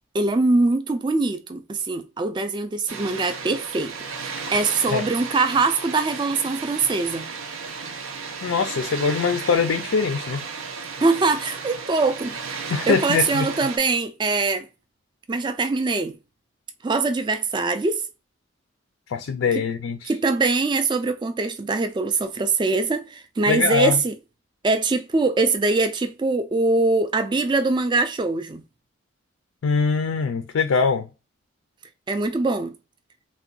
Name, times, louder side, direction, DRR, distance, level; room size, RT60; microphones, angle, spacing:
voice 1, 0.1-3.9 4.2-7.3 11.0-12.4 12.9-14.7 15.3-16.2 16.8-18.0 20.0-24.1 24.6-28.6 32.1-32.7, right 3 dB, 25° right, 0.3 m, -23 dB
Water, 2.9-13.8, right 5 dB, 85° right, 0.5 m, -34 dB
voice 2, 8.4-10.4 12.7-13.5 19.1-20.1 23.5-24.0 29.6-31.1, left 5 dB, 80° left, 0.4 m, -22 dB
3.6 x 2.2 x 2.3 m
head